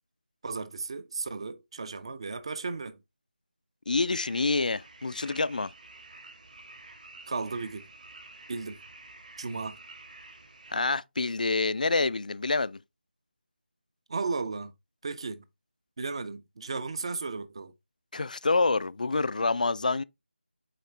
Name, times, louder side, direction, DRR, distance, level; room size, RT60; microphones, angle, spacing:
voice 1, 0.4-3.0 7.3-7.9 8.5-8.8 9.4-9.8 14.1-14.7 15.0-15.4 16.0-17.7, right 4 dB, 30° right, 0.6 m, -35 dB
voice 2, 3.9-5.7 10.7-12.8 18.1-20.0, left 3 dB, 45° left, 0.3 m, -27 dB
sound 1, 4.3-10.7, right 2 dB, 45° right, 1.6 m, -50 dB
7.7 x 4.8 x 3.2 m
figure-of-eight pair, 170°, 6 cm